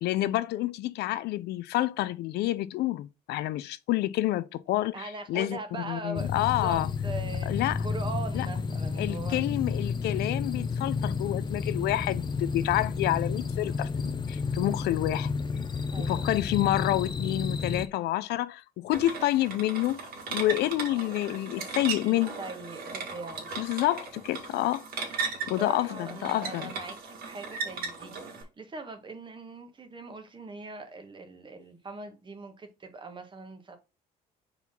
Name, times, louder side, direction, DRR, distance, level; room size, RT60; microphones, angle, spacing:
voice 1, 0.0-5.6 5.9-6.9 7.5-7.8 8.3-8.5 9.0-15.3 16.0-20.0 20.3-22.4 23.6-24.8 25.5-26.7, left 15 dB, 75° left, 0.5 m, -28 dB
voice 2, 4.9-7.5 7.8-9.4 10.1-10.2 15.9-16.2 22.0-23.5 25.4-33.8, right 3 dB, 30° right, 1.6 m, -41 dB
sound 1, 6.2-17.9, left 5 dB, 25° left, 0.7 m, -31 dB
sound 2, 18.9-28.4, right 5 dB, 60° right, 2.4 m, -37 dB
4.5 x 4.0 x 5.4 m
cardioid pair, 110°, 17 cm